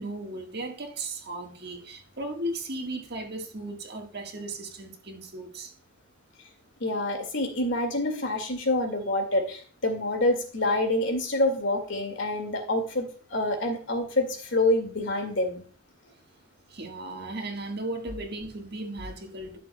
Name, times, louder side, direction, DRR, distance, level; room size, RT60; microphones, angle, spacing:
voice 1, 0.0-5.7 16.7-19.6, right 2 dB, 50° right, 1.6 m, -36 dB
voice 2, 6.8-15.6, left 1 dB, 65° left, 2.1 m, -27 dB
12.0 x 7.4 x 2.3 m
head